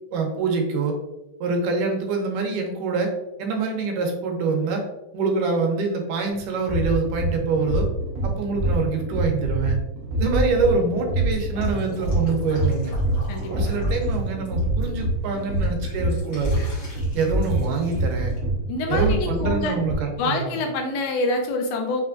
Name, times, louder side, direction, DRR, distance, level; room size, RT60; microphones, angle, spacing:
voice 1, 0.1-1.0 1.4-3.1 3.4-4.9 5.1-7.9 8.2-9.8 10.1-12.9 13.5-16.6 17.1-18.4 18.9-20.5, right 4 dB, 85° right, 2 dB, 2.4 m, -25 dB
sound 1, 6.3-19.9, right 1 dB, 70° right, 1.8 m, -25 dB
Drip, 11.3-14.8 15.2-18.4, left 1 dB, 45° left, 1.0 m, -44 dB
voice 2, 13.3-13.7 18.7-19.8 20.2-22.0, left 2 dB, 80° left, 3 dB, 1.9 m, -26 dB
5.3 x 3.4 x 2.5 m, 0.94 s
omnidirectional pair, 3.6 m